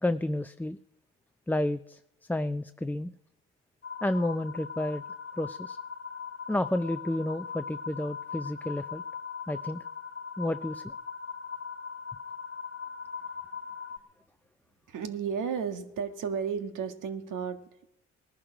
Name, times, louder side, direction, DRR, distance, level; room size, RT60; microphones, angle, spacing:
voice 1, 0.0-0.8 1.5-2.0 2.3-3.1 4.0-5.0 5.4-5.8 6.5-9.0 9.5-9.8 10.4-10.9, left 1 dB, 5° left, 0.5 m, -30 dB
sound 1, 3.8-14.0, left 6 dB, 30° left, 1.7 m, -40 dB
voice 2, 14.9-17.9, right 6 dB, 60° right, 1.8 m, -33 dB
19.0 x 11.0 x 5.0 m
hypercardioid pair, 60°, 35 cm